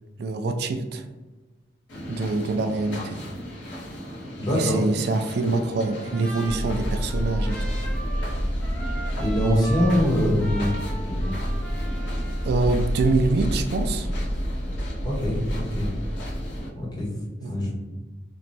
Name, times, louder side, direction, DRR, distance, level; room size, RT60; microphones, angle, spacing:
voice 1, 0.2-1.1 2.1-3.2 4.5-7.8 12.4-14.1 17.4-17.7, right 3 dB, 60° right, 6 dB, 0.3 m, -25 dB
sound 1, 1.9-16.7, equal, 80° left, 1.1 m, -38 dB
voice 2, 4.4-4.8 9.2-10.7 11.1-11.3 15.0-15.9 16.7-17.1 17.4-17.7, equal, 20° left, -4 dB, 0.9 m, -23 dB
Trumpet, 5.8-12.5, right 2 dB, 5° left, 0.6 m, -40 dB
sound 2, 6.4-16.6, equal, 40° right, 0.9 m, -28 dB
3.1 x 2.2 x 4.0 m, 1.2 s
head